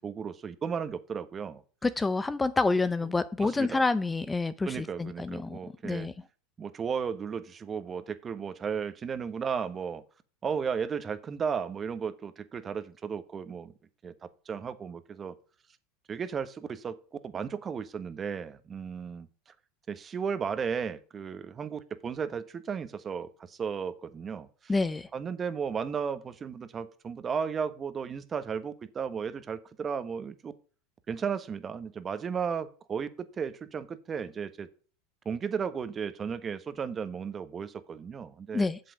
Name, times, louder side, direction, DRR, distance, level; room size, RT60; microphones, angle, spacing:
voice 1, 0.0-1.5 3.4-3.8 4.7-6.1 6.6-10.0 10.4-13.7 14.0-14.1 14.5-15.3 16.1-16.5 16.8-16.9 17.3-19.2 19.9-23.3 23.6-24.4 25.1-30.5 31.1-33.1 33.4-34.7 35.3-38.7, right 6 dB, 30° right, 1.2 m, -34 dB
voice 2, 1.8-5.6 5.8-6.1 24.7-25.1 38.5-38.8, left 3 dB, 15° left, 0.5 m, -28 dB
8.2 x 7.5 x 5.1 m
hypercardioid pair, 95°, 0 cm